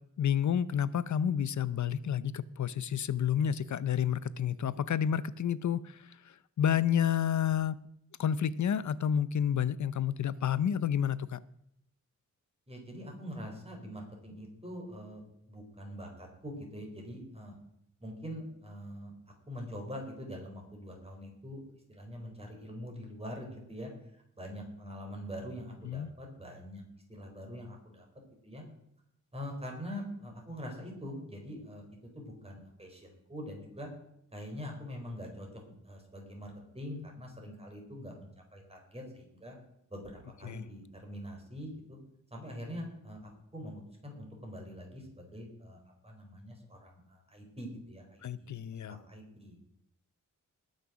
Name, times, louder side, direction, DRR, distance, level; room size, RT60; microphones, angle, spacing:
voice 1, 0.2-7.8 8.2-11.4 25.8-26.1 40.4-40.7 48.2-49.0, left 9 dB, 65° left, 17 dB, 0.6 m, -30 dB
voice 2, 12.7-17.6 18.0-19.1 19.5-21.6 21.9-23.9 24.4-26.8 27.1-28.1 28.4-28.6 29.3-31.8 32.1-33.9 34.3-39.6 39.9-42.0 42.3-48.5 48.9-49.6, equal, 20° right, 1 dB, 4.1 m, -44 dB
19.5 x 6.6 x 6.1 m, 0.74 s
wide cardioid pair, 135°, 31 cm